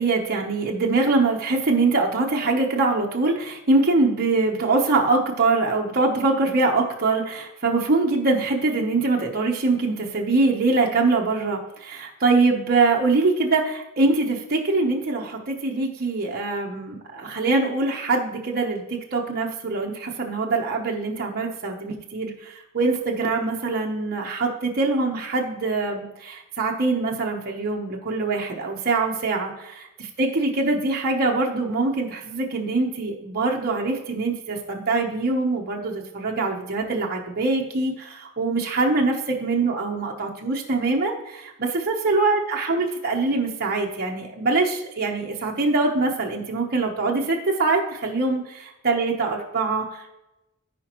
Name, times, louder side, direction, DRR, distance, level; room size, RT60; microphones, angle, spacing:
voice 1, 0.0-50.1, right 3 dB, 45° right, -1 dB, 1.0 m, -23 dB
14.0 x 5.1 x 3.0 m, 0.93 s
head